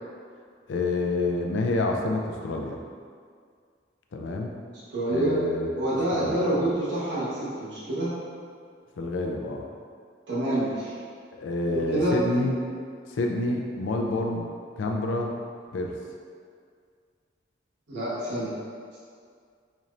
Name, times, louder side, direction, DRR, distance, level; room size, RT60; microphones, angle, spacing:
voice 1, 0.7-2.8 4.1-4.5 5.1-6.6 9.0-9.7 11.3-12.5 13.1-14.5 14.8-15.4 15.7-15.9, left 2 dB, 85° left, 2 dB, 0.4 m, -28 dB
voice 2, 4.9-5.4 5.8-8.1 10.3-10.9 11.7-12.2 17.9-18.5, right 1 dB, 75° right, -9 dB, 1.1 m, -27 dB
4.2 x 3.1 x 2.5 m, 2.1 s
head